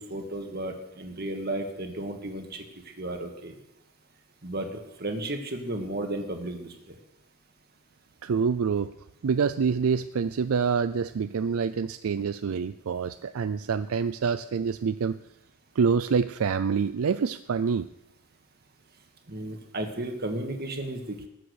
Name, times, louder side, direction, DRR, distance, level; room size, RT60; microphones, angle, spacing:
voice 1, 0.0-2.7 3.0-3.6 4.4-7.0 19.3-21.3, right 1 dB, 45° right, 4 dB, 1.8 m, -34 dB
voice 2, 8.2-8.9 9.2-15.2 15.8-17.9, right 6 dB, 70° right, 12 dB, 0.4 m, -26 dB
20.0 x 7.5 x 6.4 m, 0.89 s
head